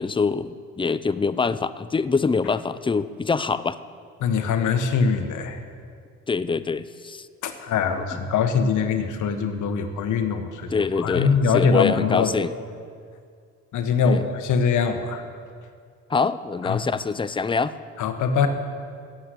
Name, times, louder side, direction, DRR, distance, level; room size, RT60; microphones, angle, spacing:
voice 1, 0.0-3.8 6.3-7.3 10.7-12.5 14.0-14.2 16.1-17.7, left 4 dB, 15° left, 14 dB, 0.5 m, -24 dB
voice 2, 4.2-5.6 7.4-12.3 13.7-15.2 16.6-16.8 18.0-18.5, left 5 dB, 80° left, 7 dB, 1.4 m, -23 dB
16.0 x 7.8 x 8.4 m, 2.1 s
cardioid pair, 90°, 30 cm